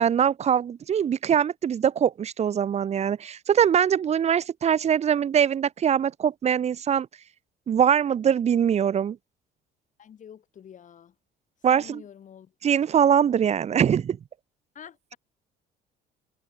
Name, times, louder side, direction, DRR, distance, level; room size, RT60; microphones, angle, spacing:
voice 1, 0.0-7.1 7.7-9.2 11.6-12.0 12.6-14.2, right 8 dB, 40° right, 0.9 m, -22 dB
voice 2, 10.0-11.1 11.7-12.5 14.7-15.2, left 9 dB, 50° left, 5.6 m, -47 dB
cardioid pair, 110°, 17 cm